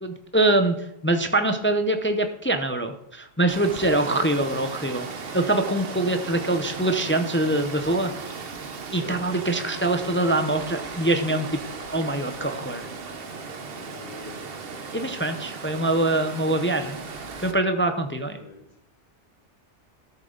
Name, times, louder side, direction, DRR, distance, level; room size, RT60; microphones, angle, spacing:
voice 1, 0.0-0.8 1.0-5.1 5.3-8.1 8.9-11.5 11.9-12.9 14.9-17.0 17.4-18.4, right 2 dB, 15° left, 7 dB, 0.5 m, -24 dB
Water, 3.5-17.5, right 4 dB, 55° right, 1.1 m, -36 dB
voice 2, 3.8-4.5 8.9-9.2 13.7-14.6 18.3-18.6, left 2 dB, 85° left, -4 dB, 4.6 m, -41 dB
13.0 x 6.8 x 3.9 m, 0.78 s
omnidirectional pair, 1.2 m